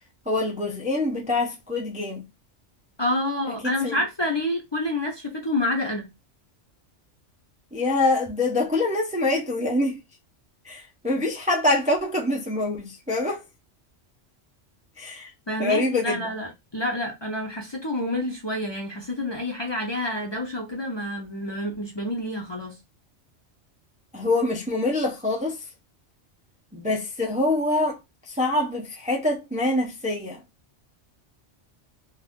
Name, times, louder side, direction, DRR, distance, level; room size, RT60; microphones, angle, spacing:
voice 1, 0.3-2.2 3.5-4.0 7.7-10.0 10.6-13.4 15.0-15.3 15.6-16.3 24.1-25.7 26.7-28.0 28.2-30.4, left 2 dB, 10° right, 0.5 m, -25 dB
voice 2, 3.0-6.1 15.5-22.8, left 1 dB, 25° left, 0.6 m, -28 dB
2.5 x 2.5 x 3.5 m
omnidirectional pair, 1.2 m